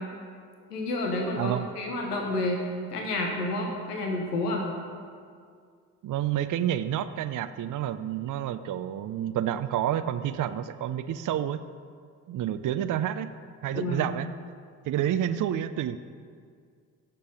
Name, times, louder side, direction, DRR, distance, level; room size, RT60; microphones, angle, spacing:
voice 1, 0.7-2.6 2.9-4.7 13.7-14.1, left 2 dB, 90° left, 1 dB, 1.2 m, -30 dB
voice 2, 1.4-1.7 6.0-11.6 12.3-13.3 13.6-14.3 14.8-16.0, right 11 dB, 45° right, 11 dB, 0.6 m, -29 dB
16.5 x 7.1 x 5.2 m, 2.1 s
hypercardioid pair, 45°, 46 cm